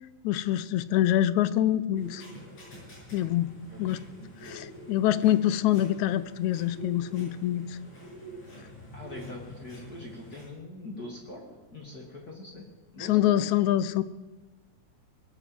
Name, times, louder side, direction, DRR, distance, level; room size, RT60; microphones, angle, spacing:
voice 1, 0.2-2.2 3.1-3.5 3.8-4.0 4.4-7.8 13.0-14.0, left 12 dB, 80° left, 16 dB, 2.0 m, -25 dB
sound 1, 1.9-10.5, equal, 65° left, 8.5 m, -46 dB
voice 2, 3.7-4.0 8.9-12.7 12.9-13.7, left 2 dB, 35° left, 0 dB, 2.4 m, -43 dB
19.5 x 9.3 x 7.8 m, 1.2 s
omnidirectional pair, 3.4 m